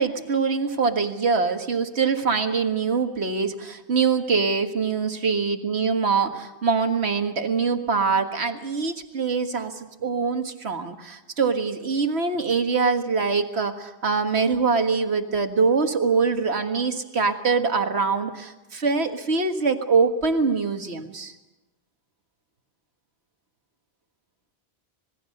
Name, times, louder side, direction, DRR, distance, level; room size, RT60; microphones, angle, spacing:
voice 1, 0.0-21.3, right 5 dB, 85° right, 6 dB, 1.9 m, -24 dB
26.5 x 20.0 x 6.6 m, 1.0 s
omnidirectional pair, 1.1 m